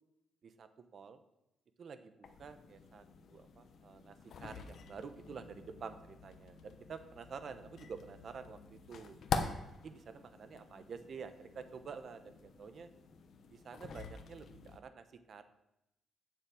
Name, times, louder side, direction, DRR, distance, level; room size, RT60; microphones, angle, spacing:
voice 1, 0.4-1.2 1.8-3.0 3.3-4.1 4.4-9.2 9.8-12.9 13.5-15.4, right 5 dB, 45° right, 10 dB, 0.9 m, -49 dB
sound 1, 2.2-14.8, left 5 dB, 55° left, 0.9 m, -45 dB
8.5 x 7.5 x 7.7 m, 0.87 s
cardioid pair, 150°, 0 cm